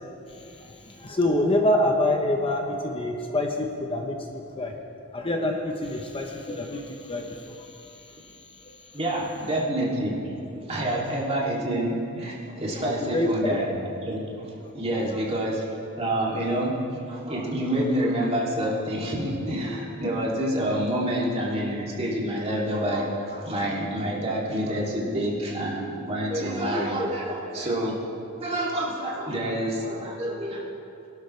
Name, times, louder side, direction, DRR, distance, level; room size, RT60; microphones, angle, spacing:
voice 1, 0.4-4.7 5.1-7.7 12.8-13.6 15.0-15.1, left 1 dB, 25° left, 2 dB, 0.8 m, -26 dB
voice 2, 8.9-10.3 10.7-27.9 28.4-30.6, right 1 dB, 30° right, -4 dB, 2.6 m, -28 dB
23.0 x 11.5 x 3.2 m, 2.7 s
head